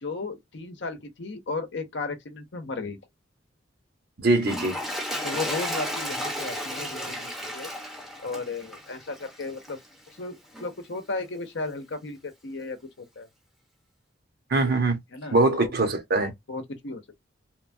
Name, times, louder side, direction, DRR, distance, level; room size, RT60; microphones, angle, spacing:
voice 1, 0.0-3.0 5.2-7.7 8.2-9.8 10.2-13.3 15.1-15.7 16.5-17.0, left 3 dB, 65° left, 0.7 m, -35 dB
voice 2, 4.2-4.8 14.5-15.0 15.3-16.3, right 2 dB, 55° right, 0.8 m, -22 dB
Toilet flush, 4.4-9.9 10.5-10.7, equal, ahead, 0.7 m, -33 dB
2.9 x 2.2 x 2.6 m
head